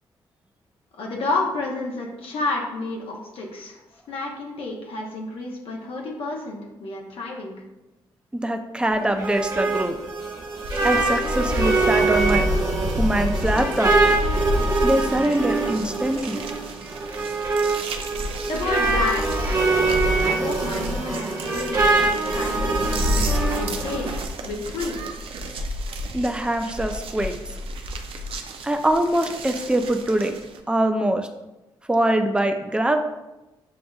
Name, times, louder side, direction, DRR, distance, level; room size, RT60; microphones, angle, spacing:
voice 1, 0.9-3.8 4.1-7.5 18.5-19.6 20.2-24.1 24.4-25.0, left 2 dB, 75° left, -1 dB, 0.9 m, -30 dB
voice 2, 8.3-10.0 10.8-12.4 13.0-13.9 14.8-16.4 26.1-27.3 28.6-30.3 30.7-31.3 31.9-33.0, right 1 dB, 10° right, 5 dB, 0.5 m, -23 dB
sound 1, 8.9-24.2, right 3 dB, 40° right, 1.1 m, -24 dB
sound 2, 10.6-30.6, left 1 dB, 75° right, 0.5 m, -30 dB
7.6 x 2.5 x 2.4 m, 1.0 s
cardioid pair, 70°, 10 cm